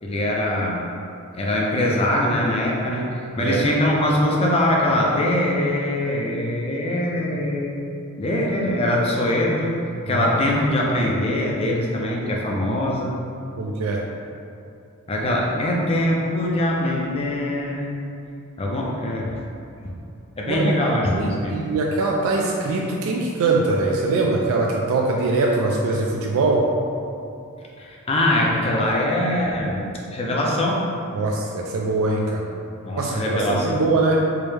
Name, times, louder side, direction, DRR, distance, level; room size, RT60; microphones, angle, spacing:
voice 1, 0.0-0.9 1.3-7.8 8.2-9.8 10.1-13.1 15.1-17.9 18.6-19.3 19.8-19.9 20.4-21.6 27.8-30.9 32.8-33.8, left 1 dB, 25° left, -2 dB, 0.4 m, -22 dB
voice 2, 13.6-14.0 20.5-20.8 21.1-26.6 31.1-32.5 33.0-34.2, right 3 dB, 75° right, -2 dB, 0.3 m, -22 dB
4.6 x 2.1 x 3.2 m, 2.6 s
head